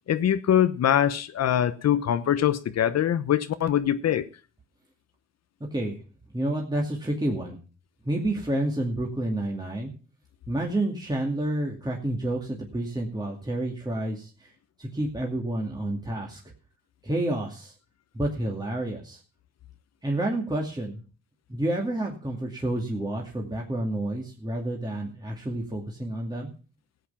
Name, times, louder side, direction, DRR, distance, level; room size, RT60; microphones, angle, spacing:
voice 1, 0.0-4.2, left 10 dB, 60° left, 0.9 m, -23 dB
voice 2, 6.3-7.6 8.1-9.9 10.5-14.5 14.8-16.4 17.0-17.7 18.1-19.2 20.0-21.0 21.5-26.5, right 1 dB, 15° right, 2.4 m, -29 dB
15.0 x 8.3 x 5.7 m
cardioid pair, 90°, 30 cm